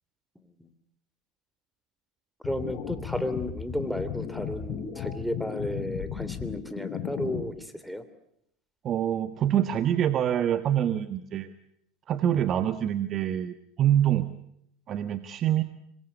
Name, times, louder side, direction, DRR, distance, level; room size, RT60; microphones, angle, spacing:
sound 1, 2.4-7.4, left 9 dB, 55° left, 6.1 m, -35 dB
voice 1, 2.4-8.0, equal, ahead, 10 dB, 3.0 m, -33 dB
voice 2, 8.8-11.5 12.1-14.3 14.9-15.6, right 10 dB, 45° right, 11 dB, 1.3 m, -25 dB
26.0 x 21.0 x 8.2 m, 0.74 s
hypercardioid pair, 85°, 0 cm